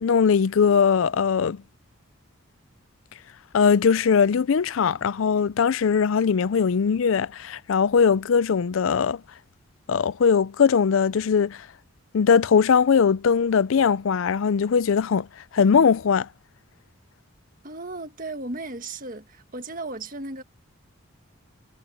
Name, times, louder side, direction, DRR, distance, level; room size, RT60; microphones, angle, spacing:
voice 1, 0.0-1.6 3.5-9.2 9.9-11.7 12.1-15.3 15.5-16.3, left 6 dB, 70° left, 0.4 m, -20 dB
voice 2, 17.6-20.4, right 2 dB, 40° right, 1.8 m, -35 dB
head